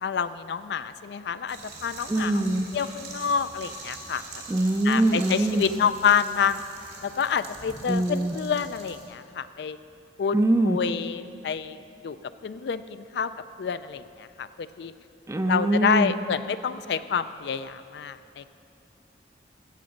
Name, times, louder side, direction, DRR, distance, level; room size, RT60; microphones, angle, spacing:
voice 1, 0.0-2.4 2.7-4.2 4.8-6.6 7.0-9.8 10.2-10.4 10.6-11.8 12.0-12.2 12.4-13.3 13.6-14.9 15.5-18.5, left 7 dB, 70° left, 13 dB, 0.4 m, -28 dB
sound 1, 1.5-9.0, right 3 dB, 70° right, 2.4 m, -43 dB
voice 2, 2.1-2.7 4.5-5.6 7.9-8.4 10.3-10.8 15.3-16.1, right 1 dB, 15° right, 8 dB, 0.4 m, -23 dB
14.5 x 7.6 x 5.1 m, 2.6 s
head